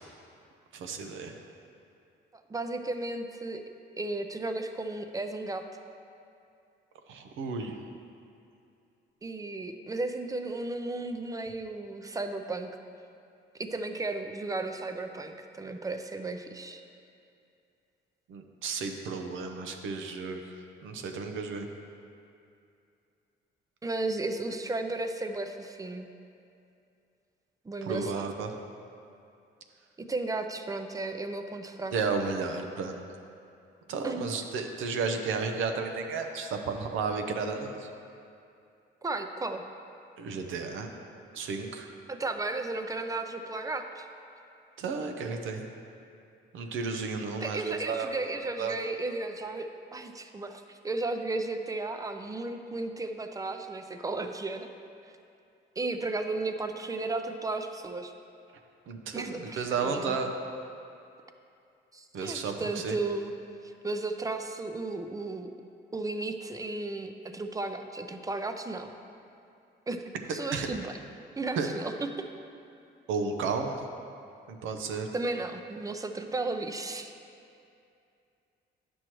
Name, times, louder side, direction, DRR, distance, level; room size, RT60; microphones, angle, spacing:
voice 1, 0.7-1.3 7.1-7.8 18.3-20.4 20.8-21.7 27.8-28.5 31.9-33.0 33.9-37.9 40.2-40.9 41.3-41.9 44.8-45.6 46.5-48.2 48.6-48.7 58.9-60.3 62.1-63.0 70.5-70.7 71.6-71.7 73.1-73.8 74.5-75.1, right 4 dB, 80° right, 4 dB, 0.7 m, -33 dB
voice 2, 2.5-3.6 4.0-5.7 9.2-12.8 13.5-16.8 23.8-26.1 27.7-28.2 30.0-31.9 34.0-34.3 39.0-39.6 42.1-44.1 47.4-54.7 55.8-58.1 59.1-60.2 61.9-63.3 63.6-65.5 65.9-68.9 69.9-70.0 70.3-71.0 71.4-72.3 75.1-77.1, right 2 dB, 15° right, 7 dB, 0.5 m, -34 dB
9.8 x 6.2 x 3.0 m, 2.5 s
cardioid pair, 90°, 20 cm